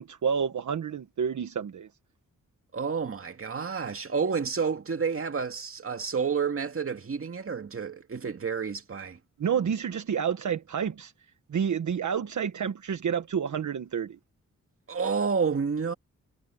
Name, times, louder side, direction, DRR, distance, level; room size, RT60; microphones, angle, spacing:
voice 1, 0.0-1.9 9.4-11.1 11.5-14.2, right 7 dB, 70° right, 1.3 m, -29 dB
voice 2, 2.7-9.2 14.9-15.9, right 5 dB, 45° right, 2.3 m, -30 dB
cardioid pair, 85°, 31 cm